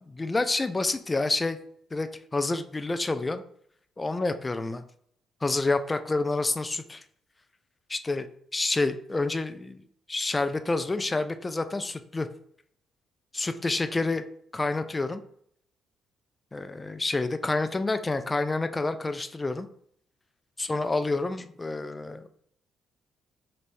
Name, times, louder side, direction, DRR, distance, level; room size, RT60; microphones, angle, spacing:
voice 1, 0.0-1.6 1.9-3.4 4.0-4.8 5.4-7.0 7.9-8.3 8.5-9.8 10.1-12.3 13.3-14.2 14.5-15.2 16.5-19.7 20.6-22.2, left 3 dB, 20° left, 9 dB, 0.3 m, -28 dB
3.2 x 3.2 x 4.2 m, 0.67 s
cardioid pair, 90°, 0 cm